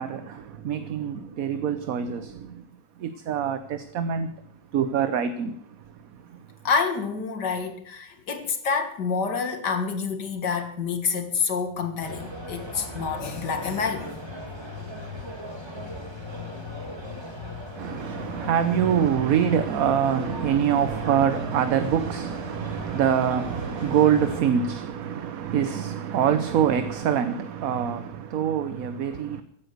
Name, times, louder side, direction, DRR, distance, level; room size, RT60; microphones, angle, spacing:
voice 1, 0.0-2.6 3.0-4.3 4.7-6.4 17.7-29.4, right 8 dB, 60° right, 1.2 m, -25 dB
voice 2, 6.6-14.1 22.8-22.9, left 5 dB, 80° left, 2.4 m, -28 dB
sound 1, 12.0-24.4, left 1 dB, 15° right, 2.4 m, -37 dB
16.0 x 10.0 x 6.7 m
omnidirectional pair, 1.8 m